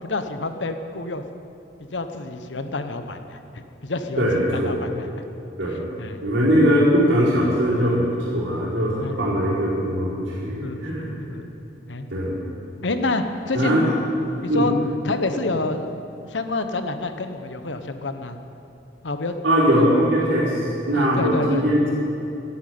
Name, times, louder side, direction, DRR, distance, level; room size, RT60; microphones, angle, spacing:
voice 1, 0.0-1.2 1.9-3.4 3.8-5.2 5.7-6.2 9.0-9.2 10.6-11.5 11.9-12.1 12.8-14.1 14.4-14.7 15.0-15.9 16.3-18.4 19.0-19.4 19.7-19.9 20.2-20.3 20.9-21.7, left 2 dB, 75° left, 8 dB, 1.1 m, -28 dB
voice 2, 4.2-4.8 5.6-5.8 6.2-11.2 12.1-12.4 13.5-13.8 14.5-14.7 19.4-21.9, equal, 85° right, -7 dB, 4.5 m, -21 dB
13.0 x 11.0 x 9.5 m, 2.8 s
head